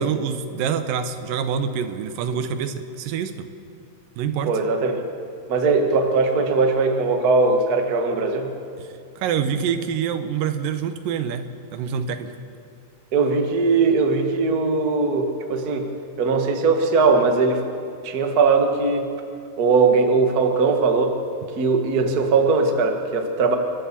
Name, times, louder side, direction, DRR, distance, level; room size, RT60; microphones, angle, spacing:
voice 1, 0.0-3.5 4.2-4.5 8.8-12.3 21.4-21.5, right 7 dB, 75° right, 9 dB, 2.5 m, -26 dB
voice 2, 4.4-5.0 5.5-8.5 13.1-15.9 16.2-17.6 18.0-19.1 19.6-21.2 21.6-23.6, right 4 dB, 45° right, 4 dB, 1.2 m, -20 dB
28.5 x 12.5 x 7.4 m, 2.4 s
omnidirectional pair, 4.1 m